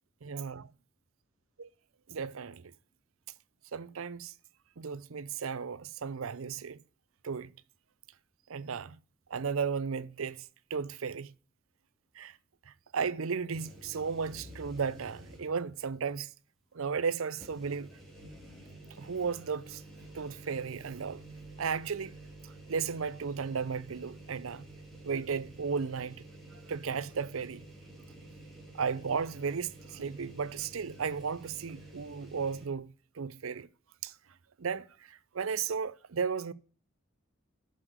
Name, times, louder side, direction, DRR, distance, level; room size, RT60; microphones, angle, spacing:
voice 1, 0.2-0.7 1.6-1.7 2.1-2.7 3.7-4.3 4.8-6.8 7.2-7.5 8.5-9.0 9.3-11.3 12.2-12.4 12.7-16.3 16.7-17.9 19.0-19.8 20.1-21.2 21.6-22.1 22.4-24.6 25.0-26.2 26.5-27.6 28.7-33.7 34.0-34.1 34.6-36.5, right 6 dB, 80° right, 0.6 m, -35 dB
sound 1, 13.5-15.7 16.1-16.2 17.3-32.7, right 1 dB, ahead, 2.8 m, -50 dB
7.5 x 6.5 x 8.0 m
head